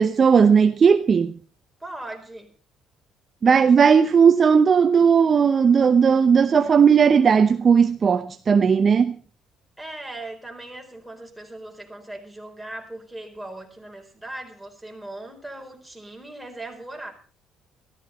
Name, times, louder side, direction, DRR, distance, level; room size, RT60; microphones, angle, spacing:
voice 1, 0.0-1.3 3.4-9.1, right 6 dB, 40° right, 0.8 m, -16 dB
voice 2, 1.8-2.5 3.4-4.0 9.8-17.1, right 1 dB, 5° right, 4.3 m, -39 dB
14.5 x 13.0 x 5.5 m
cardioid pair, 95°, 0 cm